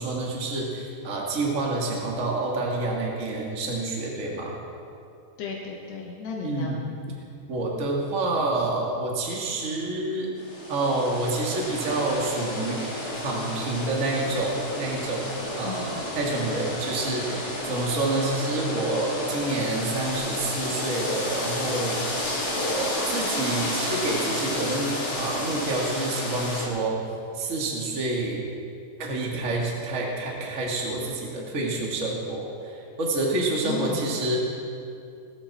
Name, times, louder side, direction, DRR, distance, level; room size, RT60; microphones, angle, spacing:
voice 1, 0.0-4.5 6.4-6.8 7.5-10.3 10.7-22.2 22.5-27.0 27.3-28.4 29.0-34.4, right 2 dB, 30° right, -2 dB, 1.6 m, -28 dB
voice 2, 5.4-6.8 15.6-16.0 33.6-34.2, left 4 dB, 75° left, -2 dB, 3.3 m, -34 dB
sound 1, 10.4-26.7, left 1 dB, 25° left, 2.5 m, -31 dB
20.0 x 13.5 x 4.4 m, 2.6 s
omnidirectional pair, 5.0 m